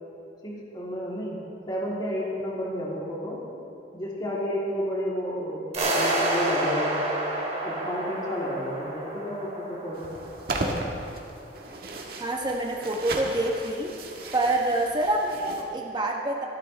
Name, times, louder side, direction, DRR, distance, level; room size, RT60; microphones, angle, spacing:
voice 1, 0.4-3.4 3.9-7.0 7.6-10.2, equal, 25° left, -6 dB, 3.3 m, -31 dB
sound 1, 5.7-10.7, right 1 dB, 40° right, 2.7 m, -29 dB
sound 2, 9.9-15.6, right 2 dB, 55° right, 1.6 m, -35 dB
voice 2, 12.2-13.9 14.3-16.5, right 1 dB, 25° right, 0 dB, 1.1 m, -26 dB
25.0 x 12.5 x 3.4 m, 2.6 s
head